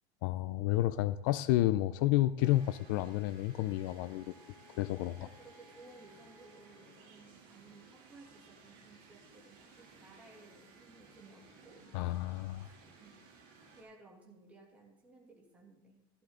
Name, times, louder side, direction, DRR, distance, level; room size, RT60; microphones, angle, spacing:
voice 1, 0.2-4.3 4.8-5.3 11.9-12.7, left 15 dB, 55° left, 14 dB, 0.5 m, -30 dB
sound 1, 2.4-7.1, left 4 dB, 20° left, 6.1 m, -62 dB
sound 2, 2.4-13.8, right 4 dB, 50° right, 6.0 m, -59 dB
voice 2, 5.1-12.0 12.6-13.2 13.8-16.1, right 3 dB, 10° right, -2 dB, 2.7 m, -58 dB
15.5 x 13.0 x 3.9 m, 0.89 s
supercardioid pair, 170°, 13 cm